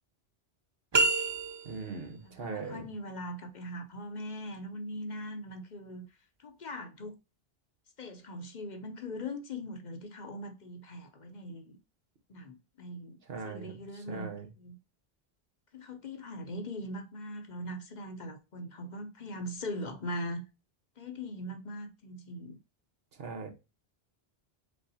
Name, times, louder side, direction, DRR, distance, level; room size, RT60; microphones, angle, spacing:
sound 1, 0.9-2.0, right 3 dB, 40° right, 0.4 m, -28 dB
voice 1, 1.6-2.8 13.3-13.7 14.1-14.5 23.2-23.5, right 4 dB, 75° right, 1.3 m, -39 dB
voice 2, 2.2-6.1 6.4-7.2 8.0-11.8 12.3-14.8 15.7-20.4 21.0-22.6, left 1 dB, 50° left, 0.7 m, -41 dB
5.3 x 3.5 x 2.7 m
omnidirectional pair, 1.0 m